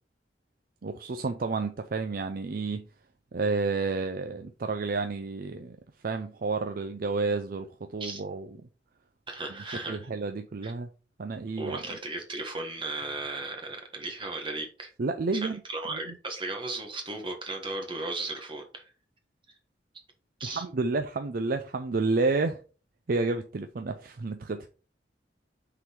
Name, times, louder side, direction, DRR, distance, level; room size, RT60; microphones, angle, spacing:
voice 1, 0.8-2.8 3.3-5.8 6.0-7.7 7.9-8.5 9.9-10.9 11.2-11.8 15.0-15.6 15.9-16.1 20.4-22.6 23.1-24.7, right 3 dB, 55° right, 0.5 m, -30 dB
voice 2, 9.3-10.1 10.6-10.7 11.6-14.9 15.3-18.8 20.4-20.6, right 2 dB, 30° right, 1.4 m, -36 dB
6.0 x 3.9 x 4.4 m
head